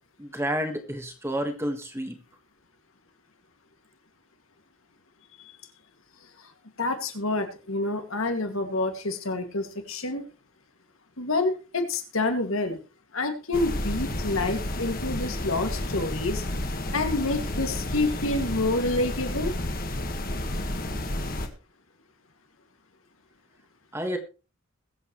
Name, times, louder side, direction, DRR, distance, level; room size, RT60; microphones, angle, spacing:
voice 1, 0.2-2.2 23.9-24.2, equal, 10° right, 5 dB, 1.6 m, -30 dB
voice 2, 6.8-10.2 11.2-12.8 13.1-16.4 16.9-19.5, left 2 dB, 80° left, 5 dB, 2.2 m, -28 dB
sound 1, 13.5-21.5, left 1 dB, 45° left, 1.6 m, -31 dB
21.5 x 8.1 x 3.2 m, 0.32 s
head